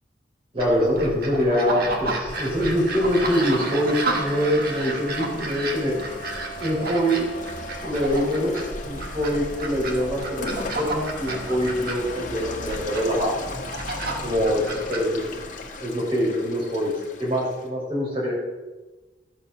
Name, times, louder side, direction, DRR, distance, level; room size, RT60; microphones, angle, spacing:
voice 1, 0.5-6.0 6.6-7.3 7.8-8.6 8.8-13.4 14.2-15.2 15.8-16.9 17.2-18.3, equal, 30° right, -5 dB, 4.0 m, -24 dB
sound 1, 0.6-15.8, right 2 dB, 55° right, 1.9 m, -32 dB
Rain, 2.3-17.7, left 2 dB, 45° left, 1.3 m, -37 dB
13.0 x 6.9 x 6.2 m, 1.2 s
head